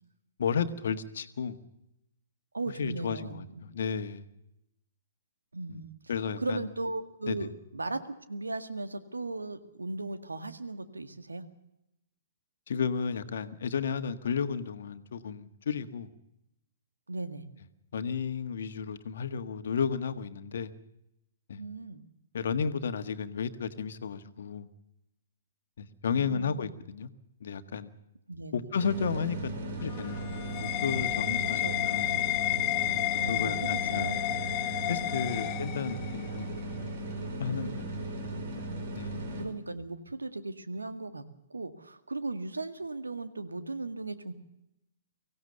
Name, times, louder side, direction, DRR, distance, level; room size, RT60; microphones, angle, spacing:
voice 1, 0.4-1.6 2.8-4.3 5.7-5.8 6.1-6.7 7.3-7.5 12.7-16.1 17.9-20.7 21.5-21.6 22.3-24.7 25.8-27.1 27.4-27.9 28.5-29.5 29.8-30.3 30.6-32.1 33.3-34.1 34.9-36.5 37.4-37.8 38.9-39.1, left 6 dB, 60° left, 11 dB, 1.5 m, -33 dB
voice 2, 2.5-3.6 5.5-5.9 6.4-8.0 8.3-11.4 17.1-17.5 21.6-22.0 26.1-26.8 28.3-28.7 31.5-31.8 33.2-34.2 34.6-34.7 35.2-35.5 37.5-37.8 39.3-41.2 41.5-44.3, right 2 dB, 80° right, 9 dB, 1.9 m, -37 dB
sound 1, 28.8-39.5, right 1 dB, 50° right, 4.7 m, -37 dB
sound 2, 29.8-36.3, left 17 dB, 30° left, 0.8 m, -31 dB
24.0 x 16.0 x 6.8 m, 0.85 s
figure-of-eight pair, 120°, 0 cm